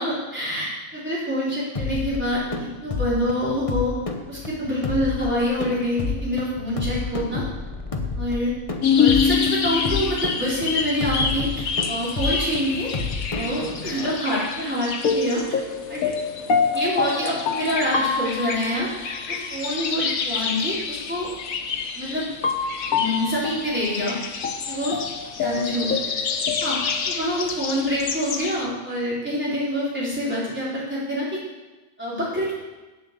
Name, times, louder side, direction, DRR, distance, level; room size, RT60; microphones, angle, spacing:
voice 1, 0.0-4.0 4.3-7.4 8.2-8.5 9.0-12.9 13.3-15.4 15.9-16.1 16.7-18.9 19.3-21.3 21.9-22.2 22.9-24.2 24.7-25.0 25.4-26.0 26.6-26.8 27.1-31.4 32.0-32.5, equal, 10° right, -8 dB, 4.2 m, -26 dB
sound 1, 1.8-14.1, left 4 dB, 25° left, 1.0 m, -30 dB
sound 2, 8.8-28.7, left 5 dB, 90° left, 1.4 m, -26 dB
9.1 x 7.8 x 7.5 m, 1.1 s
omnidirectional pair, 1.4 m